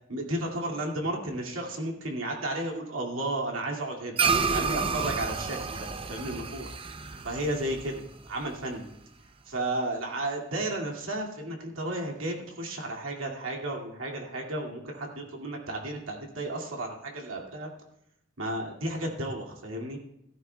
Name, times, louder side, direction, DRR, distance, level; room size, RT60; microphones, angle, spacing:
voice 1, 0.1-4.2 4.5-6.7 7.2-8.9 9.5-17.7 18.4-20.0, right 1 dB, 85° right, 0 dB, 2.3 m, -33 dB
sound 1, 4.2-8.8, right 5 dB, 25° right, 0.5 m, -30 dB
16.5 x 13.5 x 2.3 m, 0.77 s
head